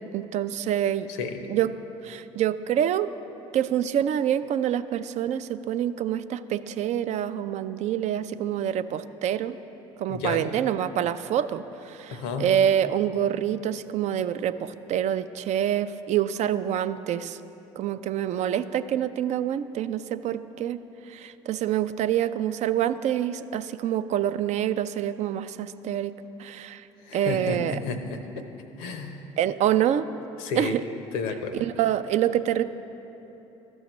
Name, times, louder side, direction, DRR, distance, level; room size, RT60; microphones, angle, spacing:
voice 1, 0.0-1.1 1.5-1.7 2.0-3.1 3.5-9.6 10.0-17.4 17.8-20.8 21.1-26.1 26.4-26.8 27.1-27.8 29.4-30.1 30.6-30.8 31.6-32.6, right 10 dB, 50° right, 12 dB, 0.4 m, -26 dB
voice 2, 10.1-10.5 12.1-12.5 27.1-28.4 28.8-29.2 30.4-30.8 31.1-31.6, left 4 dB, 70° left, 7 dB, 0.7 m, -31 dB
13.5 x 6.2 x 3.0 m, 3.0 s
hypercardioid pair, 55°, 15 cm